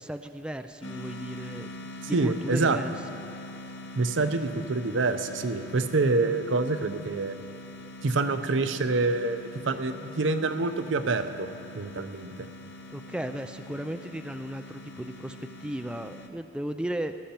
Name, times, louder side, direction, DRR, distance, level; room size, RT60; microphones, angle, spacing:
voice 1, 0.0-1.7 2.1-2.9 12.9-17.2, right 1 dB, 5° right, 7 dB, 0.3 m, -35 dB
sound 1, 0.8-16.3, left 1 dB, 80° left, 0.9 m, -43 dB
voice 2, 2.1-2.8 4.0-7.4 8.0-11.5 11.7-12.5, right 3 dB, 80° right, 9 dB, 0.6 m, -26 dB
17.0 x 12.5 x 4.4 m, 2.8 s
head